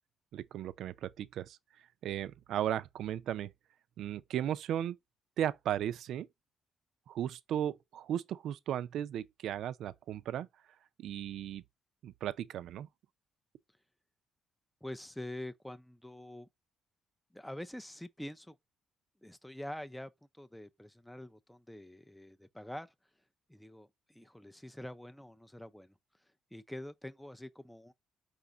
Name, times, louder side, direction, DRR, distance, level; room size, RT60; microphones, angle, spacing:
voice 1, 0.3-1.6 2.0-3.5 4.0-5.0 5.4-6.3 7.1-10.5 11.0-11.6 12.0-12.9, right 11 dB, 75° right, 0.4 m, -36 dB
voice 2, 14.8-16.5 17.3-18.6 19.2-22.9 23.5-25.9 26.2-27.9, left 1 dB, 5° left, 0.3 m, -46 dB
4.9 x 2.3 x 3.8 m
cardioid pair, 90°, 0 cm